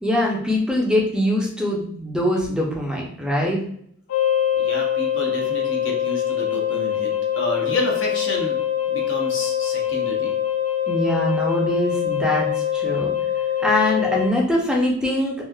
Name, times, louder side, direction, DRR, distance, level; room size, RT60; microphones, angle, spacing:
voice 1, 0.0-3.6 10.9-13.1 13.6-15.3, left 1 dB, 5° right, -2 dB, 0.5 m, -22 dB
sound 1, 4.1-14.3, left 10 dB, 80° left, 0.4 m, -23 dB
voice 2, 4.6-7.1 7.3-8.6 8.9-10.3, left 1 dB, 65° left, -1 dB, 0.8 m, -29 dB
3.0 x 2.4 x 2.3 m, 0.65 s
head